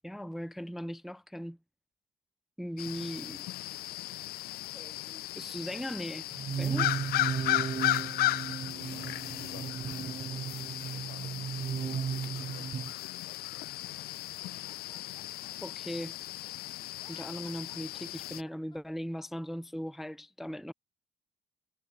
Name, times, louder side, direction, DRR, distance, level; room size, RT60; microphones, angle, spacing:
voice 1, 0.0-1.6 2.6-3.4 4.7-6.2 6.6-6.9 15.6-16.2 17.1-20.7, equal, ahead, 0.3 m, -39 dB
sound 1, 2.8-18.4, left 17 dB, 65° left, 0.4 m, -35 dB
sound 2, 6.3-12.9, right 7 dB, 35° right, 0.8 m, -35 dB
voice 2, 7.6-8.0 8.5-10.2 10.9-14.1, left 18 dB, 85° left, 1.5 m, -55 dB
Laughter, 14.2-16.5 16.9-18.8, left 5 dB, 25° left, 1.8 m, -59 dB
cardioid pair, 110°, 17 cm